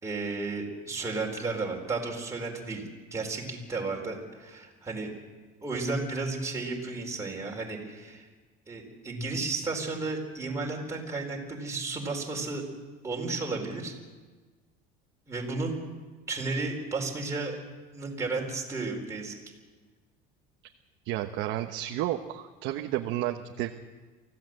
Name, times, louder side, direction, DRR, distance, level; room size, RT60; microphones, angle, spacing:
voice 1, 0.0-2.8 3.1-5.1 5.6-8.3 8.7-12.6 13.0-13.9 15.3-15.7 16.3-17.6 17.9-19.3, right 3 dB, 15° right, -1 dB, 4.4 m, -33 dB
voice 2, 21.0-23.7, right 13 dB, 65° right, 3 dB, 1.2 m, -31 dB
24.5 x 16.0 x 7.8 m, 1.4 s
cardioid pair, 150°, 20 cm